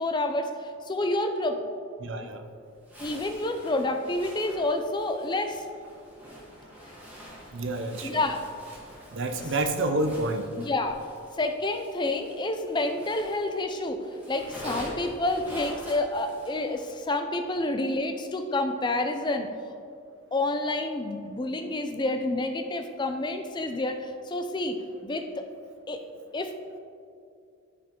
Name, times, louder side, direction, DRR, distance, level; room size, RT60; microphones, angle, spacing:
voice 1, 0.0-1.6 3.0-5.6 8.0-8.4 10.6-11.0 11.4-19.5 20.3-24.8 25.0-25.3 25.9-26.0 26.3-26.5, left 2 dB, 20° left, 6 dB, 0.4 m, -29 dB
voice 2, 2.0-2.4 7.5-8.2 9.1-10.6, right 2 dB, 55° right, 6 dB, 0.6 m, -29 dB
Zipper (clothing), 2.8-13.7 14.0-17.0, equal, 10° right, 1.5 m, -45 dB
12.5 x 5.1 x 3.0 m, 2.4 s
head